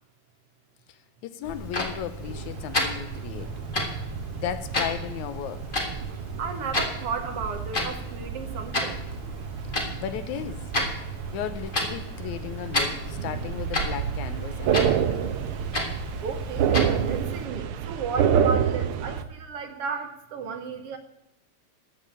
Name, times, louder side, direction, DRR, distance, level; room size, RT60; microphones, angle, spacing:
voice 1, 0.9-3.6 4.3-5.7 9.7-10.7 11.3-15.4, left 10 dB, 85° left, 2.2 m, -35 dB
Clock, 1.4-17.4, left 1 dB, 25° left, 1.3 m, -33 dB
sound 1, 2.2-19.2, right 8 dB, 80° right, 1.2 m, -30 dB
voice 2, 6.4-9.1 16.2-21.0, right 5 dB, 65° right, 1.8 m, -34 dB
14.0 x 5.4 x 8.9 m
omnidirectional pair, 3.3 m